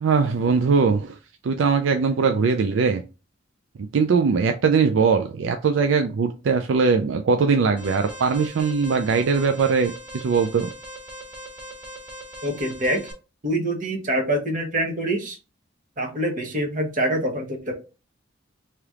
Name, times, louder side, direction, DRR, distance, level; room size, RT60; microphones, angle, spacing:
voice 1, 0.0-1.2 1.4-3.0 3.9-10.7, right 5 dB, 75° right, 6 dB, 0.4 m, -21 dB
Alarm, 7.8-13.1, right 1 dB, 10° right, 1.4 m, -40 dB
voice 2, 12.4-13.0 13.4-15.4 16.0-17.7, right 1 dB, 45° right, 2 dB, 1.0 m, -25 dB
3.3 x 2.9 x 3.5 m, 0.31 s
head